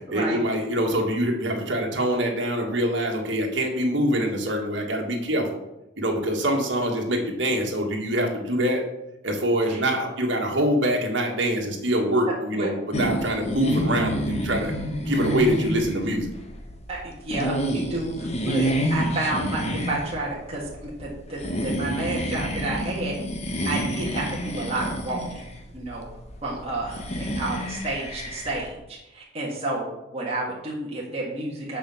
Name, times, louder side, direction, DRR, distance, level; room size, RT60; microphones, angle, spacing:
voice 1, 0.1-5.5 6.0-8.8 9.2-14.7 15.1-16.3, equal, 65° right, 1 dB, 1.8 m, -24 dB
sound 1, 12.9-28.7, equal, 35° left, 1.1 m, -29 dB
voice 2, 16.9-23.1 23.6-25.4 25.7-26.0 26.4-31.8, right 2 dB, 30° right, -5 dB, 1.7 m, -30 dB
7.0 x 5.2 x 7.2 m, 0.91 s
head